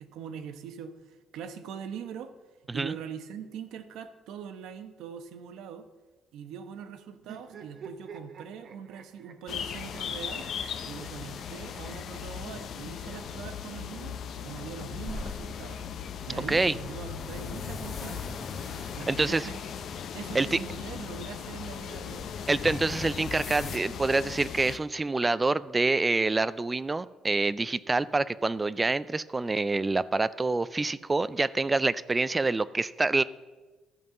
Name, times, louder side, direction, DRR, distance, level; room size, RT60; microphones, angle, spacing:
voice 1, 0.0-2.3 2.7-5.9 6.3-10.5 10.8-14.2 14.4-15.8 16.3-18.4 19.0-19.6 20.1-22.3, right 7 dB, 85° right, 9 dB, 1.0 m, -42 dB
sound 1, 7.2-13.4 14.4-15.5, right 5 dB, 45° right, 1.0 m, -50 dB
sound 2, 9.5-24.8, left 8 dB, 50° left, 0.7 m, -38 dB
sound 3, 15.0-23.8, left 4 dB, 35° left, 1.2 m, -42 dB
voice 2, 19.1-19.5 20.3-20.6 22.5-33.2, right 3 dB, 15° right, 17 dB, 0.3 m, -26 dB
13.5 x 5.5 x 7.7 m, 1.2 s
cardioid pair, 165°, 0 cm